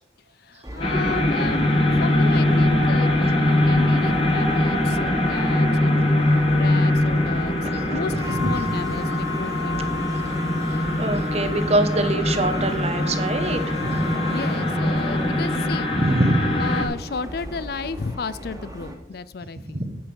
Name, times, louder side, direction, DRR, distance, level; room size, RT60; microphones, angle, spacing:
voice 1, 0.5-6.1 6.5-10.0 14.2-15.9 16.6-19.8, left 4 dB, 55° left, 17 dB, 0.4 m, -33 dB
sound 1, 0.6-18.9, left 2 dB, 20° right, 1.8 m, -35 dB
sound 2, 0.8-16.8, left 1 dB, 30° left, 1.8 m, -22 dB
voice 2, 7.6-8.5 11.0-14.1 15.9-16.6 19.7-19.9, right 1 dB, 35° right, 9 dB, 1.0 m, -24 dB
10.5 x 5.8 x 7.0 m, 0.85 s
head